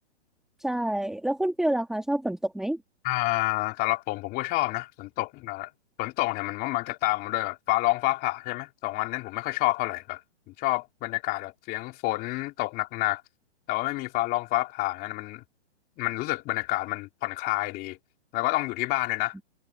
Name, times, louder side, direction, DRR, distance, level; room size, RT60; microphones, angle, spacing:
voice 1, 0.6-2.8, right 1 dB, ahead, 1.8 m, -27 dB
voice 2, 3.0-5.7 6.0-10.2 10.5-13.2 13.7-15.4 16.0-18.0 18.3-19.3, left 20 dB, 25° left, 3.3 m, -28 dB
hypercardioid pair, 150°, 36 cm